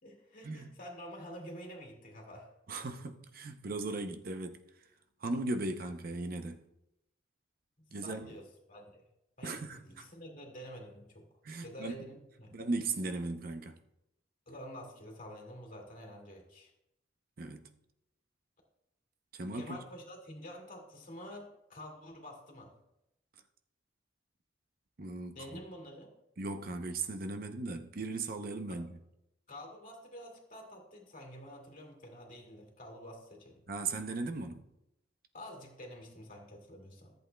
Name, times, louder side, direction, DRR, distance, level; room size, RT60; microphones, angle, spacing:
voice 1, 0.0-2.5 8.0-9.0 9.4-11.3 11.6-12.6 14.5-16.7 19.5-22.7 25.4-26.1 28.7-28.8 29.5-33.6 35.3-37.1, equal, 45° left, 2.1 m, -48 dB
voice 2, 2.7-4.8 5.2-6.6 7.9-8.3 9.4-10.1 11.4-12.0 12.5-13.8 17.4-17.7 19.3-19.8 25.0-25.4 26.4-29.0 33.7-34.6, right 3 dB, 50° right, 0.6 m, -37 dB
14.5 x 8.0 x 2.2 m
head